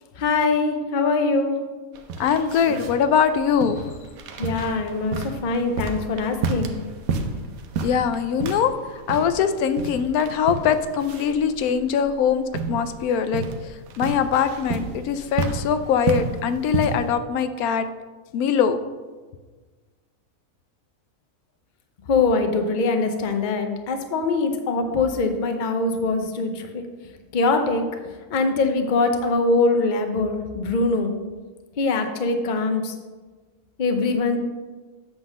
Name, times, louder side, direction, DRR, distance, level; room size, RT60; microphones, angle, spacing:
voice 1, 0.2-1.6 4.4-6.8 22.1-26.8 27.3-27.9 28.3-31.2 31.8-32.9 33.8-34.4, left 3 dB, 40° left, 6 dB, 0.7 m, -23 dB
sound 1, 1.9-17.1, right 4 dB, 80° right, 1.2 m, -31 dB
voice 2, 2.2-4.0 7.8-8.7 9.1-17.9 18.3-18.8, left 7 dB, 85° left, 10 dB, 1.1 m, -22 dB
8.4 x 4.0 x 6.3 m, 1.4 s
omnidirectional pair, 1.5 m